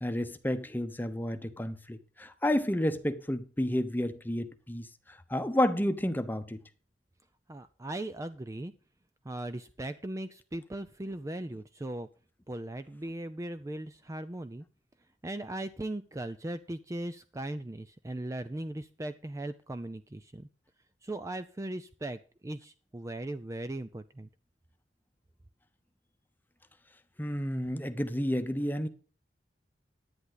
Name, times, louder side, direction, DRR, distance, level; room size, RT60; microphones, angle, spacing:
voice 1, 0.0-6.6 27.2-28.9, left 1 dB, 10° left, 0.9 m, -31 dB
voice 2, 7.5-8.7 9.2-12.1 12.5-14.7 15.2-20.5 21.0-24.3, right 1 dB, 20° right, 0.5 m, -38 dB
10.5 x 9.7 x 4.0 m
head